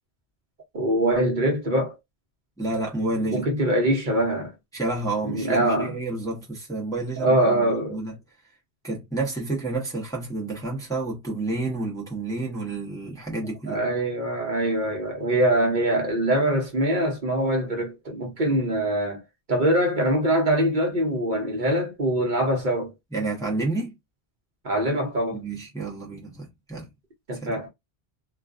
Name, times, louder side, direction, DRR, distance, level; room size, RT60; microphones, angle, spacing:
voice 1, 0.7-2.0 3.3-4.5 5.2-5.9 7.2-8.0 13.7-19.2 19.5-22.9 24.6-25.4 27.3-27.7, right 1 dB, 50° right, 0.9 m, -23 dB
voice 2, 2.6-3.5 4.7-8.2 8.8-13.8 23.1-23.9 25.3-26.9 27.4-27.6, right 2 dB, 5° left, 0.8 m, -30 dB
2.4 x 2.3 x 2.4 m
omnidirectional pair, 1.1 m